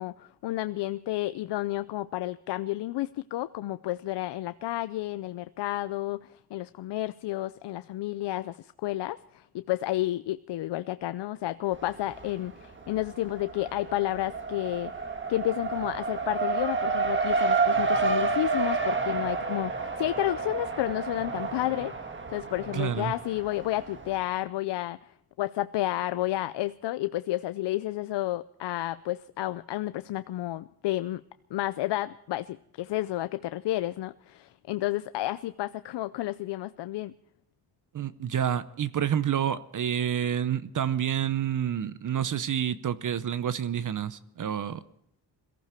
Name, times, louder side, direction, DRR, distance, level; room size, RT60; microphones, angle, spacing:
voice 1, 0.0-14.9 15.3-31.2 31.5-37.1, left 15 dB, 90° left, 13 dB, 0.6 m, -31 dB
Race car auto racing, 11.7-12.5 12.8-24.1, right 4 dB, 30° right, 1.6 m, -30 dB
voice 2, 22.7-23.1 37.9-44.8, right 9 dB, 50° right, 15 dB, 0.7 m, -28 dB
22.5 x 14.5 x 4.4 m, 0.78 s
wide cardioid pair, 130°, 40 cm